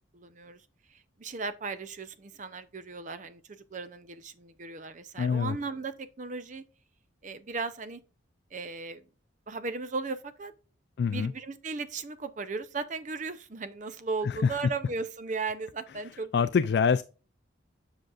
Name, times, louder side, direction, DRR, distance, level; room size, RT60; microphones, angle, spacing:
voice 1, 0.1-0.6 0.9-6.6 7.2-8.0 8.5-9.0 9.5-10.5 11.1-16.3 16.9-17.0, right 4 dB, 40° right, 0.6 m, -36 dB
voice 2, 5.2-5.6 11.0-11.3 14.2-14.5 16.3-17.0, left 6 dB, 55° left, 0.3 m, -25 dB
7.7 x 6.2 x 2.4 m
head